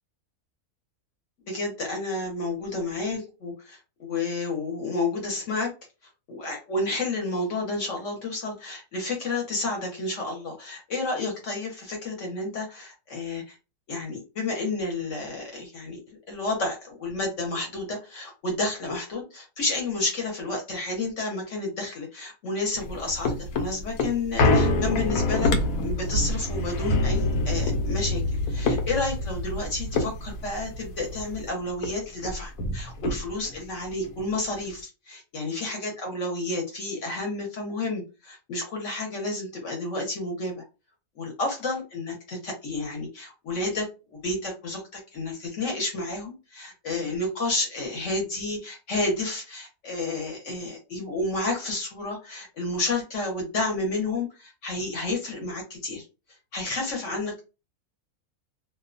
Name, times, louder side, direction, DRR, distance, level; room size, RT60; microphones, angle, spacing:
voice 1, 1.5-5.7 6.3-13.6 13.9-25.5 25.8-28.2 28.5-40.6 41.2-56.0 56.5-57.4, left 2 dB, 60° left, 1 dB, 1.1 m, -31 dB
sound 1, 22.8-31.5 31.8-31.9 32.2-33.6 34.0-34.1, left 2 dB, 80° left, 1.1 m, -26 dB
2.5 x 2.2 x 2.5 m, 0.30 s
omnidirectional pair, 1.6 m